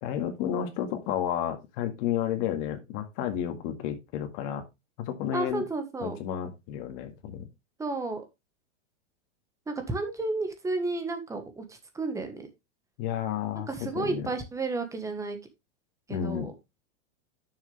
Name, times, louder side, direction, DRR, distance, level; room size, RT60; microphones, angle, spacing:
voice 1, 0.0-4.6 5.0-5.6 6.0-7.5 13.0-14.3 16.1-16.5, left 10 dB, 45° left, 6 dB, 2.0 m, -31 dB
voice 2, 5.3-6.2 7.8-8.2 9.7-12.5 13.7-15.4 16.1-16.5, right 3 dB, 10° right, 7 dB, 1.3 m, -32 dB
11.0 x 6.7 x 3.3 m, 0.23 s
supercardioid pair, 150°, 35 cm